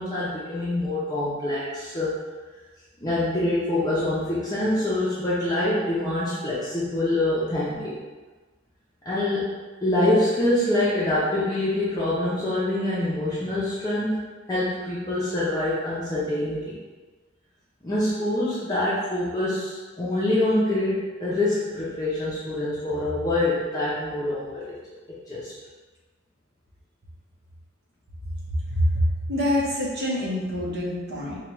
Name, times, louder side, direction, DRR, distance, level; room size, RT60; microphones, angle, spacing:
voice 1, 0.0-2.1 3.0-8.0 9.1-14.2 14.5-16.8 17.8-24.7 25.3-25.5, left 1 dB, 20° left, -9 dB, 0.6 m, -25 dB
voice 2, 28.7-31.4, equal, 55° right, -5 dB, 1.0 m, -25 dB
4.6 x 2.3 x 3.0 m, 1.3 s
head